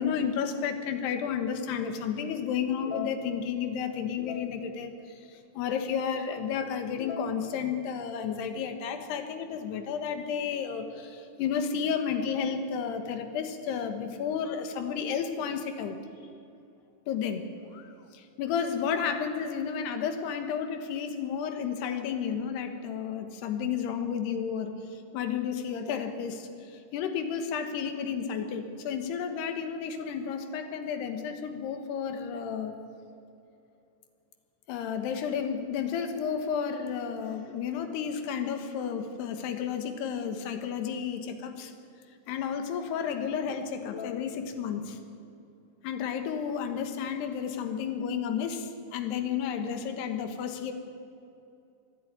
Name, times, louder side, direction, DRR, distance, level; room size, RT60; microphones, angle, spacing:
voice 1, 0.0-16.0 17.1-32.8 34.7-41.7 42.3-45.0 45.8-50.7, left 7 dB, 80° left, 7 dB, 3.5 m, -32 dB
21.5 x 12.5 x 9.6 m, 2.7 s
omnidirectional pair, 4.7 m